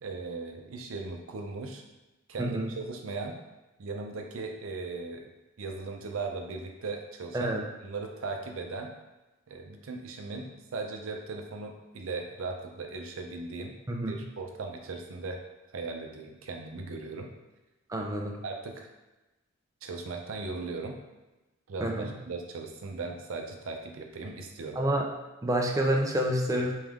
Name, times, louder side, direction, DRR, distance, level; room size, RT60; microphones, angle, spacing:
voice 1, 0.0-1.8 2.3-3.4 3.8-5.3 5.6-8.9 9.5-13.8 14.1-15.4 15.7-17.3 18.4-18.9 19.8-21.0 21.7-24.8, right 3 dB, 75° right, 3 dB, 0.5 m, -38 dB
voice 2, 2.4-2.7 7.3-7.6 13.9-14.2 17.9-18.3 21.8-22.1 24.8-25.1 25.4-26.7, right 1 dB, 15° right, 1 dB, 0.4 m, -28 dB
3.4 x 3.1 x 3.5 m, 1.1 s
head